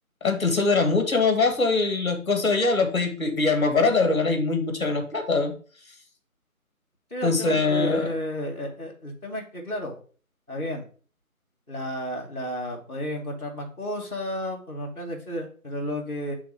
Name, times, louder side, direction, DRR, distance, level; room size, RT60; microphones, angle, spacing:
voice 1, 0.2-5.5 7.2-8.1, left 3 dB, 20° left, 5 dB, 1.2 m, -22 dB
voice 2, 7.1-10.0 10.5-10.8 11.7-16.3, equal, 10° right, 1 dB, 1.5 m, -32 dB
8.2 x 3.4 x 5.1 m, 0.41 s
figure-of-eight pair, 170°, 43 cm